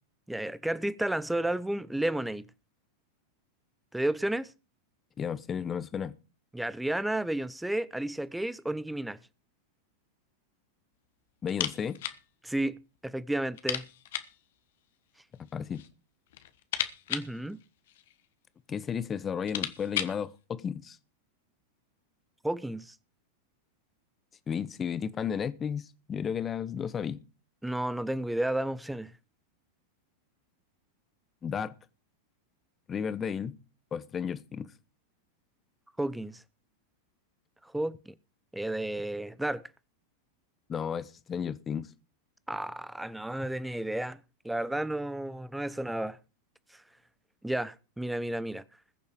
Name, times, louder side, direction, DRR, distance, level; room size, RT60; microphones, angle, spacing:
voice 1, 0.3-2.5 3.9-4.5 6.5-9.2 12.4-13.9 17.1-17.6 22.4-22.9 27.6-29.1 36.0-36.4 37.6-38.1 38.5-39.7 42.5-44.2 44.4-46.2 47.4-48.6, right 1 dB, 5° right, 0.8 m, -32 dB
voice 2, 5.2-6.1 11.4-12.0 15.4-15.8 18.7-21.0 24.5-27.2 31.4-31.7 32.9-33.6 33.9-34.7 40.7-41.9, left 7 dB, 20° left, 1.0 m, -33 dB
sound 1, 11.5-12.2 12.5-12.6 13.0-13.1 13.5-14.4 15.4-15.9 16.3-18.3 18.9-19.0 19.3-20.2, left 12 dB, 55° left, 1.3 m, -36 dB
20.5 x 7.0 x 4.9 m
figure-of-eight pair, 90°, 0 cm